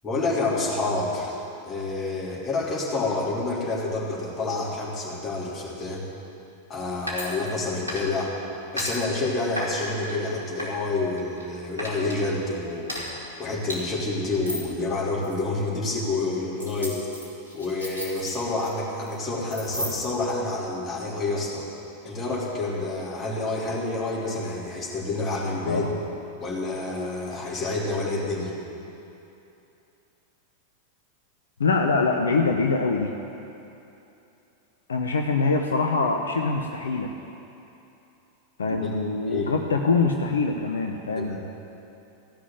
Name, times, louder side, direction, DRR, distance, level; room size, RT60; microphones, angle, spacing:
voice 1, 0.0-1.4 1.7-6.0 6.7-8.3 8.7-13.0 13.4-17.0 17.5-21.7 22.0-25.9 26.4-28.6 38.7-38.9 39.3-39.5 41.2-41.4, left 2 dB, 20° left, -5 dB, 3.2 m, -28 dB
sound 1, 7.1-8.3 8.8-8.9 9.6-10.2 10.6-11.5 11.8-12.2 12.9-13.0 13.7-13.8 14.4-14.7 15.2-15.4 16.6-18.7 19.0-19.2 19.5-20.2, equal, 80° right, 2.8 m, -33 dB
voice 2, 31.6-33.1 34.9-37.1 38.6-41.4, left 4 dB, 70° left, 3 dB, 0.7 m, -24 dB
15.5 x 6.1 x 9.2 m, 2.9 s
figure-of-eight pair, 90°, 0 cm